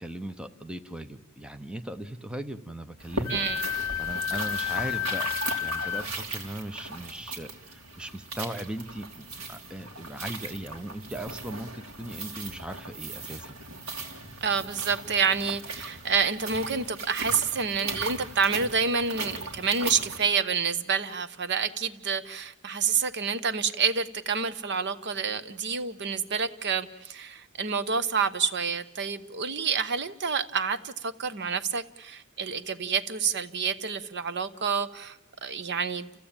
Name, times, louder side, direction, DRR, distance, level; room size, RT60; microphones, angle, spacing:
voice 1, 0.0-3.4 4.0-13.6, right 1 dB, 5° right, 7 dB, 0.8 m, -38 dB
sound 1, 3.0-20.2, right 2 dB, 70° right, 3.3 m, -38 dB
Wind instrument woodwind instrument, 3.2-6.0, left 9 dB, 65° left, 1.0 m, -31 dB
voice 2, 3.3-3.6 14.4-36.1, right 5 dB, 55° right, 12 dB, 0.9 m, -28 dB
29.0 x 15.0 x 8.8 m, 0.86 s
head